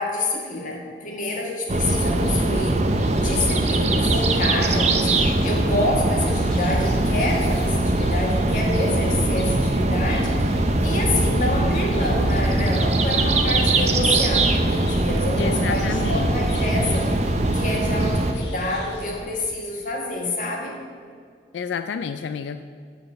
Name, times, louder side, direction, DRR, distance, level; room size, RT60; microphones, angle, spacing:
voice 1, 0.0-2.8 3.1-10.6 10.8-17.1 17.5-20.8, left 2 dB, 45° left, 0 dB, 1.8 m, -28 dB
sound 1, 1.7-18.3, right 2 dB, 40° right, 0.7 m, -21 dB
sound 2, 1.8-19.2, left 2 dB, 70° left, 1.3 m, -40 dB
voice 2, 15.4-16.4 21.5-22.6, left 6 dB, 90° left, 9 dB, 0.3 m, -29 dB
12.0 x 4.2 x 7.7 m, 2.1 s
head